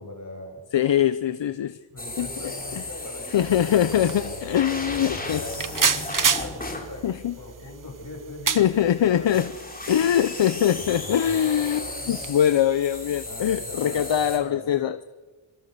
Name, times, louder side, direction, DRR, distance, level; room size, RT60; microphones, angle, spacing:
voice 1, 0.0-0.6 1.9-3.8 4.1-4.3 4.8-7.1 7.4-9.5 11.8-12.2 13.2-14.8, left 2 dB, 40° left, 1 dB, 7.6 m, -41 dB
voice 2, 0.7-1.8 2.2-2.8 3.3-5.4 7.0-7.3 8.5-9.5 9.9-15.0, left 10 dB, 65° left, 13 dB, 0.8 m, -23 dB
sound 1, 2.0-6.9 9.2-14.4, left 2 dB, 20° left, 4.2 m, -35 dB
Bowed string instrument, 3.0-8.0, right 1 dB, 80° right, 4.2 m, -48 dB
sound 2, 3.4-13.3, right 6 dB, 40° right, 1.0 m, -32 dB
26.5 x 23.5 x 6.8 m, 1.4 s
wide cardioid pair, 105°, 47 cm